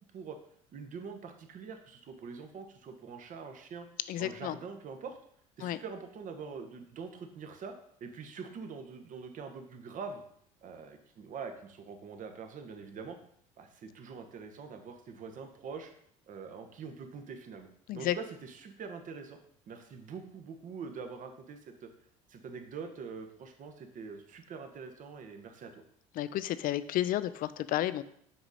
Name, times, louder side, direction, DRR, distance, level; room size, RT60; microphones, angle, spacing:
voice 1, 0.7-3.9 4.2-5.2 5.6-7.7 8.0-10.2 10.6-13.2 13.6-15.9 16.3-17.7 17.9-19.4 19.7-21.9 22.3-25.8, right 5 dB, 50° right, 6 dB, 1.1 m, -44 dB
voice 2, 4.1-4.6 5.6-5.8 17.9-18.2 26.2-28.0, left 13 dB, 55° left, 15 dB, 0.5 m, -32 dB
6.0 x 5.0 x 4.1 m, 0.67 s
hypercardioid pair, 75°, 17 cm